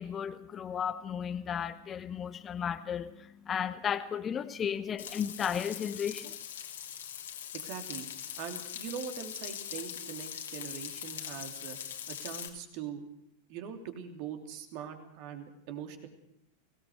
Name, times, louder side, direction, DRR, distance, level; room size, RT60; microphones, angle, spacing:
voice 1, 0.0-6.4, left 8 dB, 25° left, 11 dB, 0.9 m, -34 dB
Frying (food), 5.0-12.5, left 9 dB, 60° left, 2.6 m, -41 dB
voice 2, 7.5-8.1 8.4-11.8 12.1-13.0 13.5-16.1, right 8 dB, 45° right, 6 dB, 3.0 m, -42 dB
23.5 x 17.5 x 6.5 m, 0.76 s
figure-of-eight pair, 90°, 0 cm